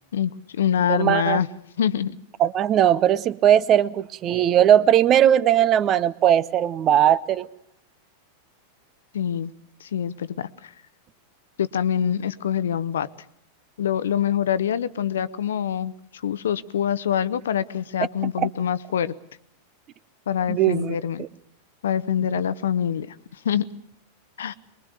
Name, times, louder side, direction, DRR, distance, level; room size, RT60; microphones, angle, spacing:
voice 1, 0.1-1.5 1.8-2.2 9.1-9.5 9.8-10.7 11.6-13.1 13.8-15.9 16.2-19.1 20.3-21.2 21.8-23.1 23.4-23.6 24.4-24.5, left 9 dB, 65° left, 17 dB, 0.8 m, -25 dB
voice 2, 0.9-1.4 2.4-7.5 18.4-18.5 20.5-21.3, right 10 dB, 30° right, 20 dB, 0.8 m, -19 dB
23.5 x 22.0 x 6.5 m, 0.74 s
figure-of-eight pair, 90°, 0 cm